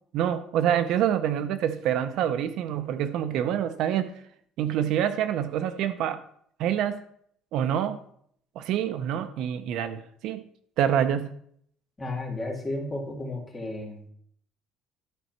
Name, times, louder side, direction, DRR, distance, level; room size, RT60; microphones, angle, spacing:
voice 1, 0.1-4.1 4.6-6.2 6.6-7.0 7.5-8.0 8.6-10.4 10.8-11.3, right 10 dB, 55° right, 11 dB, 0.6 m, -26 dB
voice 2, 12.0-14.1, left 2 dB, 15° left, -1 dB, 2.0 m, -33 dB
12.0 x 4.2 x 5.9 m, 0.66 s
cardioid pair, 170°, 0 cm